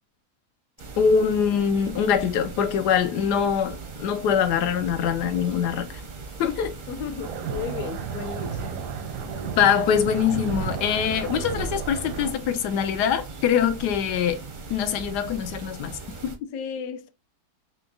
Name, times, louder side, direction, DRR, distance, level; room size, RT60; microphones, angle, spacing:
sound 1, 0.8-16.4, right 4 dB, 50° right, 0.5 m, -40 dB
voice 1, 1.0-6.0 6.4-6.7 9.6-14.4 14.7-16.3, left 7 dB, 90° left, 1.2 m, -23 dB
voice 2, 6.9-8.9 16.5-17.1, left 7 dB, 70° left, 0.9 m, -34 dB
sound 2, 7.2-12.3, right 6 dB, 85° right, 1.2 m, -33 dB
4.3 x 2.9 x 2.6 m
omnidirectional pair, 1.7 m